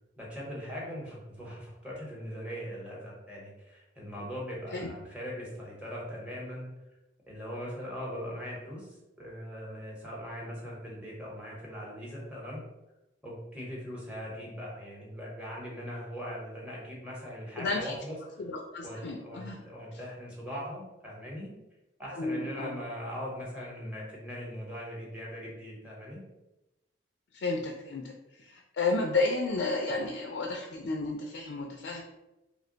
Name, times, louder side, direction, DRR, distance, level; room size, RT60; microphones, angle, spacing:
voice 1, 0.2-6.7 7.3-8.9 9.2-12.6 13.2-18.2 18.8-21.5 22.0-26.2, equal, 5° right, -4 dB, 0.8 m, -40 dB
voice 2, 17.6-18.0 18.4-19.6 22.1-22.8 27.3-32.0, left 3 dB, 70° left, 2 dB, 0.3 m, -32 dB
2.9 x 2.1 x 3.8 m, 0.97 s
head